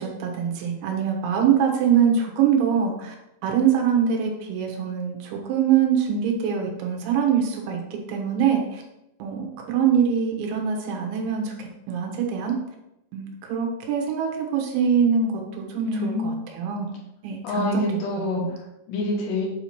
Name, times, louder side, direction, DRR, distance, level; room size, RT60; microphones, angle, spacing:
voice 1, 0.0-3.2 3.4-8.8 9.2-12.6 13.1-16.9 17.2-17.9 18.4-18.5, right 7 dB, 85° right, 1 dB, 3.4 m, -24 dB
voice 2, 15.8-16.4 17.4-19.5, left 3 dB, 80° left, -3 dB, 3.6 m, -27 dB
8.1 x 2.9 x 5.8 m, 0.88 s
omnidirectional pair, 5.1 m